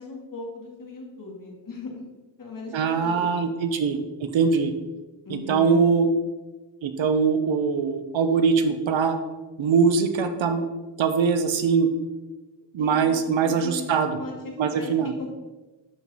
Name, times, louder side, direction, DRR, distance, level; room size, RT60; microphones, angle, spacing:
voice 1, 0.0-2.0 2.4-3.3 5.3-5.9 12.8-13.2 13.4-13.8 14.2-15.3, left 3 dB, 45° left, -1 dB, 2.2 m, -38 dB
voice 2, 2.7-4.7 5.3-6.1 6.8-9.2 9.6-10.6 11.0-11.9 12.7-14.2 14.6-15.1, right 5 dB, 70° right, 8 dB, 1.0 m, -22 dB
11.0 x 4.7 x 4.2 m, 1.2 s
wide cardioid pair, 115°, 47 cm